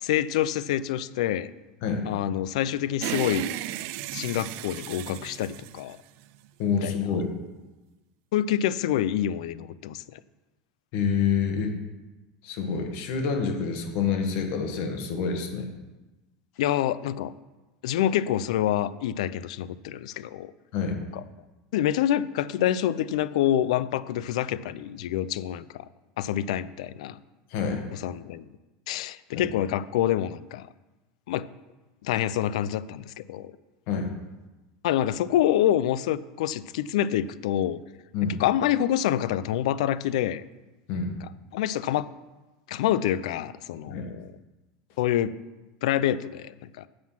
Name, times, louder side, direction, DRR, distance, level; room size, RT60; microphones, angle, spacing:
voice 1, 0.0-1.5 2.1-3.5 4.1-6.0 6.8-7.0 8.3-10.2 16.6-17.3 17.8-20.5 21.1-21.2 21.7-25.9 26.2-27.2 27.9-28.5 28.9-30.7 31.3-31.5 32.0-33.5 34.8-37.8 38.4-40.4 41.5-42.1 42.7-44.3 45.0-45.3 45.8-46.9, left 11 dB, 80° left, 17 dB, 0.4 m, -27 dB
sound 1, 3.0-6.5, right 14 dB, 55° right, 0.3 m, -34 dB
voice 2, 6.6-7.3 10.9-11.8 12.4-15.7 20.7-21.0 27.5-27.8 29.3-29.4 33.9-34.1 38.1-38.4 40.9-41.1 43.9-44.1, left 6 dB, 60° left, 4 dB, 1.7 m, -27 dB
7.6 x 7.3 x 5.9 m, 1.1 s
supercardioid pair, 140°, 4 cm